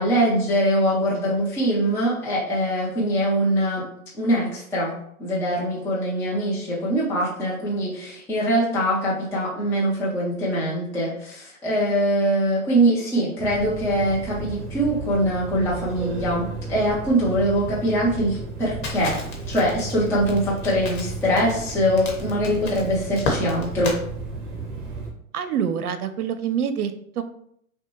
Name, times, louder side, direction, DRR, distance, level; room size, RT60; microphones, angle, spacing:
voice 1, 0.0-3.9 4.1-19.2 19.5-24.0, equal, 5° left, -7 dB, 0.6 m, -23 dB
sound 1, 13.4-25.1, right 3 dB, 35° right, 1.2 m, -34 dB
Crackle, 18.8-24.0, left 3 dB, 35° left, 1.2 m, -32 dB
voice 2, 25.3-27.2, right 8 dB, 75° right, 10 dB, 0.7 m, -26 dB
5.7 x 2.2 x 3.0 m, 0.70 s
hypercardioid pair, 125°, 44 cm